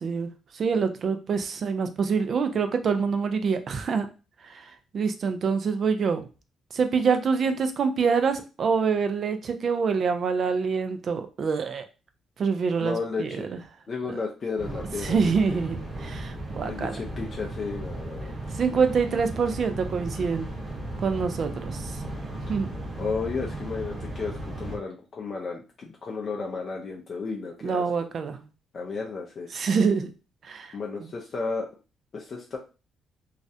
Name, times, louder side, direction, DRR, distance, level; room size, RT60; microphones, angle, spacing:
voice 1, 0.0-4.1 4.4-6.3 6.7-11.8 12.4-13.5 14.1-14.2 15.0-15.8 16.0-17.0 18.5-20.5 21.0-22.0 22.5-22.7 27.6-28.4 29.5-30.1 30.4-31.1, right 5 dB, 55° right, 8 dB, 0.4 m, -26 dB
voice 2, 12.8-13.6 13.9-15.3 16.6-18.4 23.0-27.8 28.7-29.5 30.7-31.7 32.1-32.6, left 4 dB, 50° left, 0 dB, 0.5 m, -33 dB
sound 1, 14.6-24.8, right 1 dB, 20° right, 1.0 m, -36 dB
2.4 x 2.0 x 2.6 m, 0.32 s
cardioid pair, 90°, 0 cm